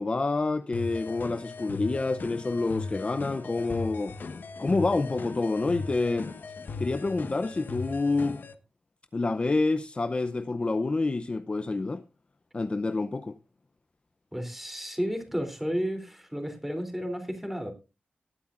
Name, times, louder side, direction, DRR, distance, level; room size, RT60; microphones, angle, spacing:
voice 1, 0.0-4.2 4.6-6.3 6.8-8.4 9.1-12.0 12.5-13.4, left 3 dB, 30° left, 0.6 m, -28 dB
sound 1, 0.7-8.5, left 4 dB, 65° left, 1.2 m, -38 dB
voice 2, 14.3-17.7, equal, 5° right, 3.2 m, -32 dB
19.5 x 9.9 x 2.5 m
wide cardioid pair, 125°, 4 cm